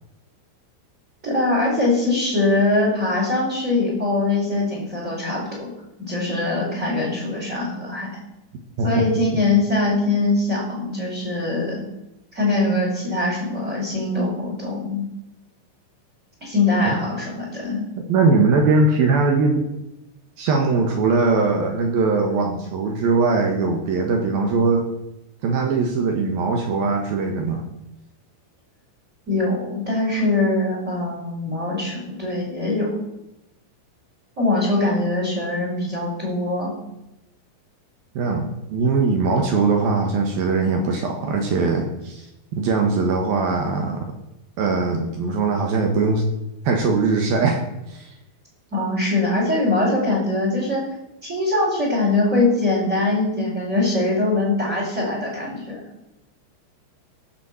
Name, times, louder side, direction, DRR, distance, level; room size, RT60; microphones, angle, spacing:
voice 1, 1.2-5.7 6.0-8.1 8.8-11.8 12.3-15.1 16.4-17.9 29.3-32.9 34.4-36.7 48.7-50.8 51.2-55.8, left 2 dB, 15° right, -3 dB, 4.7 m, -22 dB
voice 2, 18.1-19.6 20.4-24.9 25.4-27.6 38.1-42.3 42.5-44.1 44.6-46.2 46.6-48.1, right 4 dB, 65° right, 3 dB, 2.8 m, -20 dB
16.5 x 7.4 x 7.1 m, 0.90 s
omnidirectional pair, 5.4 m